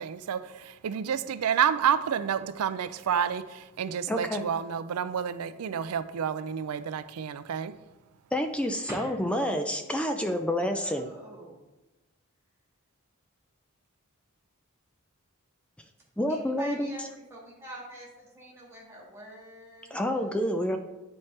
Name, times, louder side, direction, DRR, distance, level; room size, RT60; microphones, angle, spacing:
voice 1, 0.0-7.8, right 8 dB, 85° right, 13 dB, 0.4 m, -29 dB
voice 2, 4.1-4.4 8.3-11.1 16.2-17.1 19.9-20.8, equal, 5° left, 5 dB, 0.3 m, -28 dB
voice 3, 9.5-10.0 10.2-11.6 16.3-20.3, right 1 dB, 10° right, -4 dB, 1.7 m, -45 dB
9.5 x 4.4 x 3.2 m, 1.1 s
head